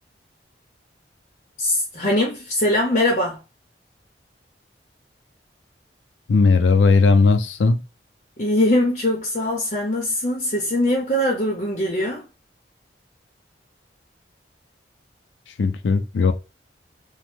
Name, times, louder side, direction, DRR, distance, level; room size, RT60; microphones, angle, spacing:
voice 1, 1.6-3.4 8.4-12.2, left 1 dB, 40° left, 0.7 m, -22 dB
voice 2, 6.3-7.8 15.6-16.3, left 4 dB, 90° left, 0.4 m, -17 dB
3.0 x 2.1 x 3.2 m
head